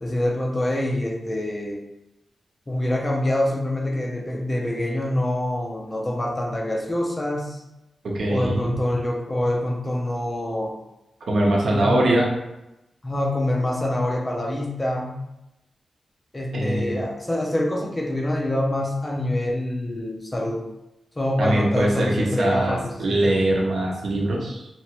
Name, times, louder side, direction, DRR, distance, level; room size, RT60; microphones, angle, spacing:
voice 1, 0.0-1.8 2.7-7.6 8.3-10.7 11.7-12.0 13.0-15.2 16.3-20.7 21.2-23.3, left 1 dB, 20° left, 0 dB, 0.4 m, -25 dB
voice 2, 8.0-8.7 11.3-12.3 16.5-17.0 21.4-24.7, right 1 dB, 65° right, -2 dB, 0.7 m, -22 dB
2.9 x 2.4 x 2.9 m, 0.93 s
wide cardioid pair, 170°, 0 cm